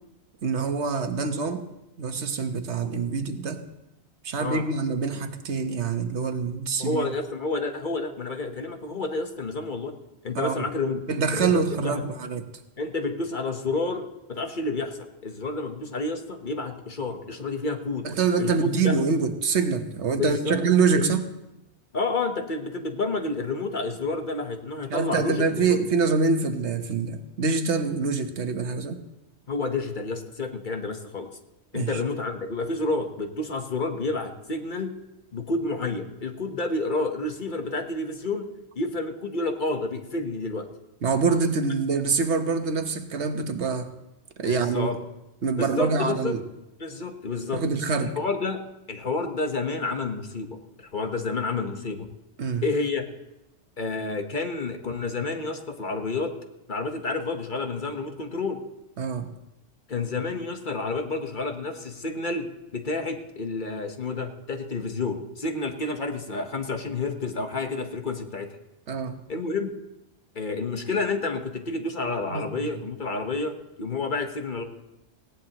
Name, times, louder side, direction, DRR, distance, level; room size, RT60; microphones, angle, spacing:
voice 1, 0.4-1.6 2.0-3.6 4.2-7.1 10.3-10.6 11.1-12.5 18.0-21.3 24.9-29.0 31.7-32.0 41.0-43.9 44.4-44.9 45.4-46.4 47.5-48.2 52.4-52.6 59.0-59.3 68.9-69.2 72.3-72.5, right 4 dB, 80° right, 7 dB, 1.4 m, -25 dB
voice 2, 6.8-9.9 10.2-11.0 11.3-12.0 12.8-18.1 18.4-19.0 20.2-20.6 20.9-21.1 21.9-25.8 29.5-31.3 31.7-34.9 35.3-38.5 38.7-40.7 44.4-45.0 45.6-46.4 46.8-47.6 48.0-48.6 48.9-52.1 52.6-53.1 53.8-56.3 56.7-58.6 59.9-68.5 69.3-69.7 70.3-74.6, left 3 dB, 45° left, 5 dB, 1.3 m, -29 dB
19.0 x 16.5 x 3.0 m, 0.92 s
omnidirectional pair, 1.1 m